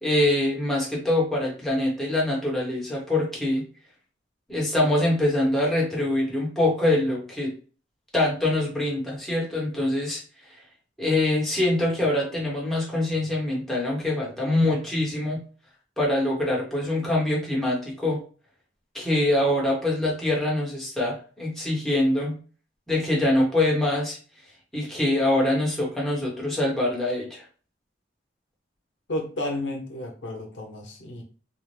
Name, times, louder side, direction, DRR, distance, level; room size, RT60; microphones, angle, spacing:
voice 1, 0.0-3.6 4.5-7.5 8.1-10.2 11.0-15.4 16.0-18.2 18.9-22.4 22.9-24.2 24.7-27.4, left 1 dB, ahead, -4 dB, 0.9 m, -24 dB
voice 2, 29.1-31.2, left 1 dB, 90° left, 2 dB, 0.8 m, -32 dB
2.6 x 2.1 x 3.1 m, 0.38 s
head